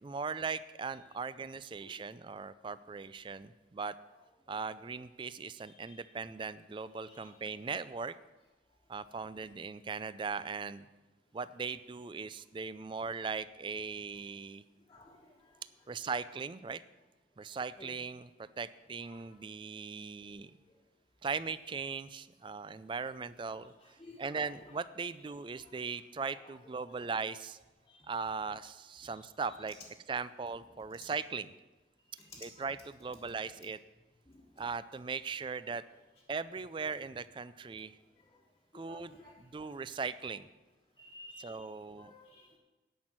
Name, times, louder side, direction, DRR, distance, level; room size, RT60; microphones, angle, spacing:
voice 1, 0.0-4.0 4.5-8.2 8.9-10.9 11.3-14.6 15.9-16.8 17.4-20.5 21.2-27.6 28.1-29.8 30.1-31.6 32.4-33.8 34.6-35.8 36.3-38.0 38.7-40.5 41.4-42.1, right 5 dB, 25° right, 16 dB, 0.3 m, -39 dB
voice 2, 14.9-15.5 15.9-16.0 17.8-17.9 19.1-19.2 23.8-24.2 26.2-26.3 27.9-28.0 29.0-29.1 31.0-31.1 32.2-32.6 34.3-34.4 38.7-39.4 39.6-39.8 41.0-41.6 42.0-42.5, left 2 dB, 15° left, -5 dB, 1.4 m, -54 dB
10.0 x 6.1 x 8.8 m, 1.2 s
head